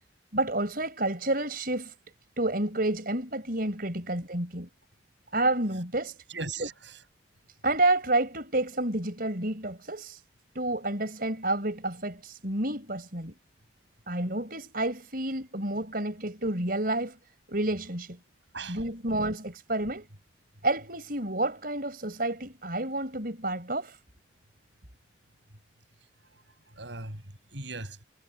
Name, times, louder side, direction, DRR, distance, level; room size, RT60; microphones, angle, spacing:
voice 1, 0.3-1.9 2.4-4.7 5.3-6.2 6.6-6.7 7.6-10.2 10.5-13.4 14.1-17.2 17.5-18.2 18.7-20.1 20.6-24.0, right 2 dB, 50° right, 5.7 m, -29 dB
voice 2, 6.3-7.0 18.5-19.0 26.7-27.2 27.5-28.0, right 3 dB, 65° right, 8.0 m, -38 dB
head